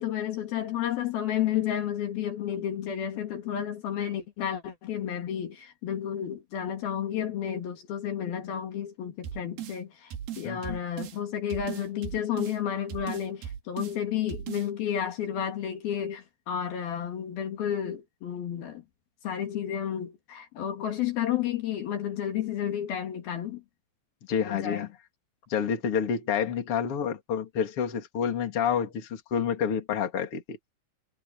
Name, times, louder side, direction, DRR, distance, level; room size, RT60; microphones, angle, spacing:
voice 1, 0.0-18.8 19.2-23.6 24.4-24.9, left 9 dB, 65° left, 3.8 m, -31 dB
sound 1, 9.2-9.8 10.1-11.2 11.5-12.6 12.9-14.0 14.3-14.7, right 9 dB, 65° right, 3.4 m, -38 dB
voice 2, 10.4-10.8 24.3-24.9 25.5-30.6, left 7 dB, 35° left, 3.2 m, -28 dB
omnidirectional pair, 4.9 m